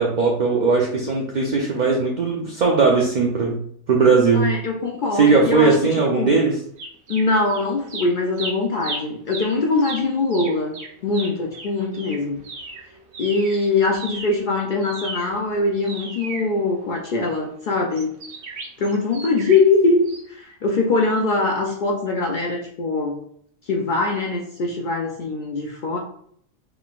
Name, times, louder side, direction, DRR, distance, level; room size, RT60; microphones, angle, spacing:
voice 1, 0.0-3.6 3.9-4.5 5.1-6.5, right 4 dB, 55° right, -1 dB, 0.5 m, -18 dB
voice 2, 4.3-5.8 6.1-6.3 7.1-10.8 11.0-12.4 13.2-18.1 18.8-23.2 23.6-26.0, left 3 dB, 85° left, 1 dB, 0.4 m, -22 dB
sound 1, 6.8-7.6 7.9-13.6 13.9-17.2 17.9-19.7 20.1-20.2, right 3 dB, 85° right, 1.2 m, -35 dB
3.8 x 3.5 x 2.4 m, 0.65 s
omnidirectional pair, 1.4 m